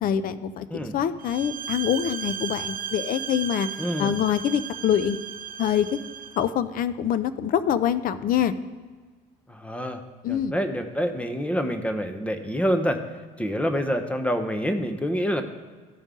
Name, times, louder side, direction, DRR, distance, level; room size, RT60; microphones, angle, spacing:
voice 1, 0.0-3.7 4.0-5.2 5.6-6.0 6.4-8.5 10.2-10.6, left 9 dB, 55° left, 14 dB, 0.5 m, -25 dB
sound 1, 1.2-6.5, right 8 dB, 55° right, 0.6 m, -35 dB
voice 2, 3.8-4.2 9.5-10.0 10.3-13.0 13.4-15.4, equal, 5° left, 7 dB, 0.8 m, -27 dB
13.5 x 5.3 x 3.7 m, 1.5 s
cardioid pair, 110°, 17 cm